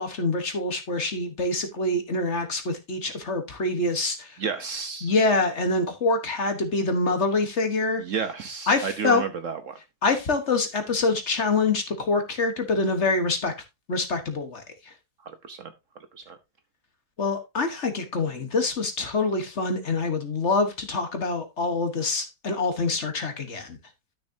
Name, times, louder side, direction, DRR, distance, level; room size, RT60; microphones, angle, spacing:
voice 1, 0.0-4.4 5.0-8.0 8.7-9.2 10.0-13.5 13.9-14.9 17.2-23.8, left 3 dB, 45° left, 1.4 m, -25 dB
voice 2, 4.4-5.1 8.0-9.8 15.2-15.7 16.1-16.4, right 5 dB, 55° right, 1.1 m, -31 dB
12.0 x 6.4 x 2.7 m
omnidirectional pair, 1.8 m